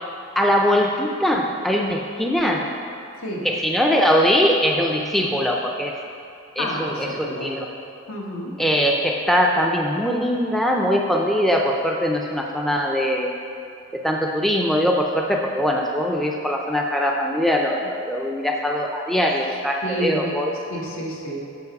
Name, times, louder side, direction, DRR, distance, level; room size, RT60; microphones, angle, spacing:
voice 1, 0.4-2.7 3.4-6.0 6.6-7.7 8.6-13.3 13.9-20.5, equal, ahead, 0 dB, 0.4 m, -21 dB
voice 2, 6.6-7.5 8.1-8.5 19.8-20.3 20.7-21.4, equal, 85° left, -2 dB, 1.5 m, -29 dB
8.2 x 5.5 x 5.3 m, 2.6 s
head